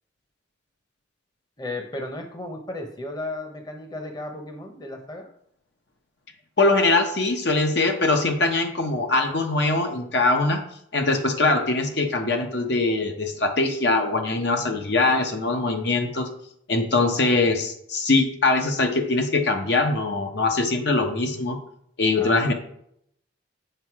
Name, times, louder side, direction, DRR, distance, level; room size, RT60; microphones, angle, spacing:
voice 1, 1.6-5.3 22.2-22.5, left 2 dB, 20° left, 4 dB, 0.9 m, -34 dB
voice 2, 6.6-10.6 10.9-16.3 16.7-21.6 22.0-22.5, left 3 dB, 60° left, 4 dB, 1.0 m, -22 dB
7.9 x 5.4 x 4.7 m, 0.71 s
head